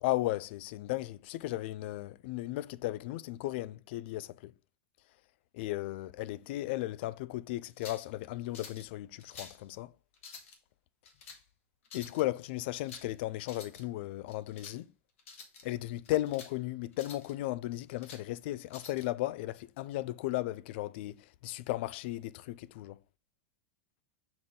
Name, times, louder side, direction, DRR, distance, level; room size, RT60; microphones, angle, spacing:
voice 1, 0.0-4.5 5.5-9.9 11.9-14.9 15.6-23.0, left 16 dB, 55° left, 0.4 m, -35 dB
sound 1, 7.6-8.1 8.5-8.9 9.2-9.6 10.1-10.6 11.1-11.4 11.9-12.2 12.7-13.1 13.4-13.8 14.3-14.8 15.2-15.6 16.1-16.5 16.9-17.3 17.8-18.3 18.7-19.1, left 5 dB, 80° left, 1.9 m, -49 dB
6.9 x 4.0 x 3.6 m
supercardioid pair, 150°, 7 cm